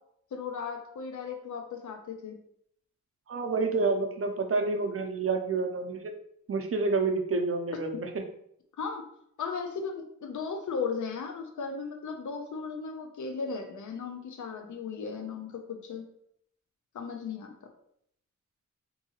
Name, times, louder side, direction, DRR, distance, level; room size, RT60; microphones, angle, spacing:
voice 1, 0.3-2.4 8.8-9.0 9.4-16.0 16.9-17.5, left 5 dB, 80° left, 4 dB, 0.5 m, -36 dB
voice 2, 3.3-6.1 6.5-8.2, right 3 dB, 50° right, 4 dB, 0.6 m, -29 dB
3.6 x 2.7 x 2.8 m, 0.70 s
wide cardioid pair, 90°, 30 cm